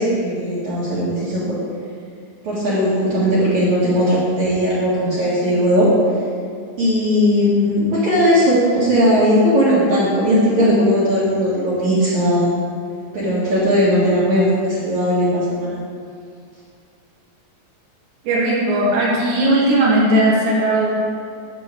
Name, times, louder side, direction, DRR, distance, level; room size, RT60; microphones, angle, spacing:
voice 1, 0.0-1.6 2.4-5.9 6.8-12.5 13.1-15.8, equal, 50° right, -10 dB, 2.6 m, -17 dB
voice 2, 18.2-21.0, right 1 dB, 70° right, -6 dB, 4.1 m, -17 dB
12.0 x 8.7 x 3.4 m, 2.3 s
omnidirectional pair, 5.3 m